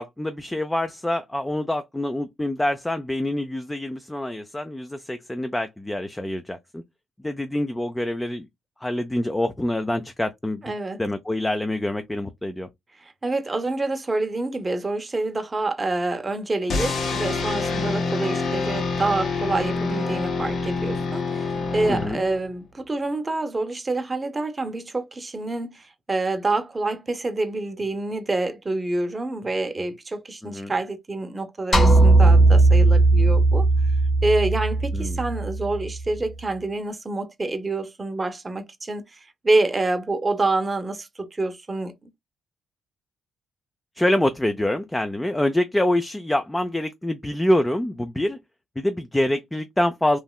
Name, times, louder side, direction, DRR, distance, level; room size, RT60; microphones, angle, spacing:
voice 1, 0.0-6.8 7.2-8.5 8.8-10.7 11.0-12.7 21.9-22.2 30.4-30.7 34.9-35.2 44.0-48.4 48.8-50.2, left 1 dB, 10° left, 0.4 m, -25 dB
voice 2, 10.6-11.0 13.0-21.5 21.7-33.7 34.2-42.1, right 2 dB, 25° right, 0.7 m, -27 dB
sound 1, 16.7-22.6, left 4 dB, 60° left, 1.3 m, -26 dB
sound 2, 31.7-36.1, right 2 dB, 40° left, 1.4 m, -17 dB
3.1 x 2.7 x 2.2 m
cardioid pair, 90°, 0 cm